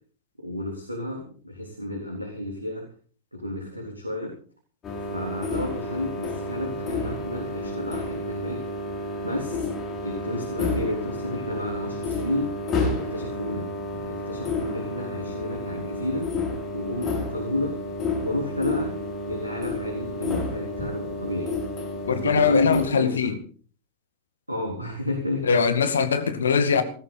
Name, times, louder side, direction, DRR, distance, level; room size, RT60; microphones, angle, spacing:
voice 1, 0.4-2.9 3.3-4.3 5.0-8.6 9.2-9.7 10.0-12.5 12.9-13.7 14.1-16.3 16.7-17.8 18.2-19.0 19.3-21.5 22.1-23.3 24.5-25.8, left 1 dB, 85° right, 3.8 m, -31 dB
sound 1, 4.8-22.9, left 2 dB, 25° left, 6.6 m, -31 dB
voice 2, 22.1-23.4 25.5-26.8, left 6 dB, 70° left, 2.1 m, -22 dB
19.0 x 15.5 x 4.2 m
figure-of-eight pair, 90°, 0 cm